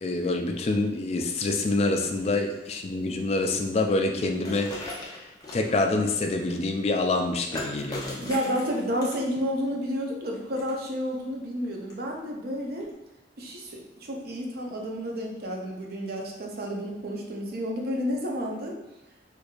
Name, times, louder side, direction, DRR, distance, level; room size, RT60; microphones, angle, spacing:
voice 1, 0.0-5.2 5.5-8.3, left 2 dB, 35° left, 3 dB, 0.3 m, -26 dB
sound 1, 4.5-5.7 7.5-9.4 10.3-10.9 11.9-12.0 12.8-12.9, left 2 dB, 20° left, 0.7 m, -37 dB
voice 2, 8.2-12.9 13.4-18.8, equal, 60° right, 1 dB, 0.6 m, -31 dB
4.5 x 2.5 x 2.4 m, 0.95 s
head